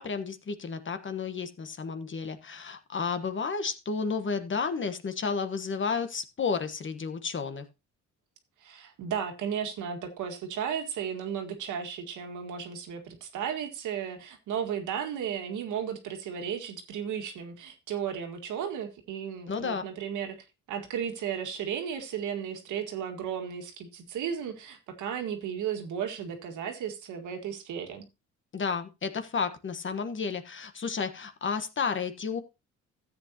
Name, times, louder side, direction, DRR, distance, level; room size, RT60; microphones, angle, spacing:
voice 1, 0.0-7.6 19.5-19.8 28.5-32.4, left 5 dB, 40° left, 1.4 m, -32 dB
voice 2, 8.6-28.1, right 8 dB, 85° right, 1.9 m, -34 dB
13.5 x 8.2 x 2.9 m
cardioid pair, 90°, 30 cm